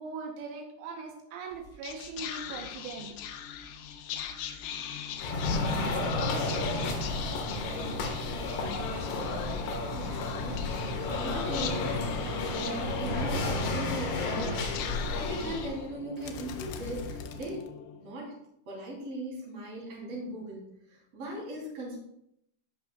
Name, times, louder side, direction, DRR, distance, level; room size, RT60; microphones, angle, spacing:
voice 1, 0.0-3.2, right 4 dB, 80° right, 2 dB, 3.5 m, -40 dB
Whispering, 1.5-18.1, left 8 dB, 85° left, 2.4 m, -40 dB
sound 1, 5.2-15.8, left 2 dB, 70° left, 3.6 m, -32 dB
voice 2, 9.9-17.7 18.0-18.4 18.7-20.6 20.9-22.0, right 1 dB, 35° right, -4 dB, 3.5 m, -39 dB
16.0 x 6.1 x 2.3 m, 0.77 s
omnidirectional pair, 5.8 m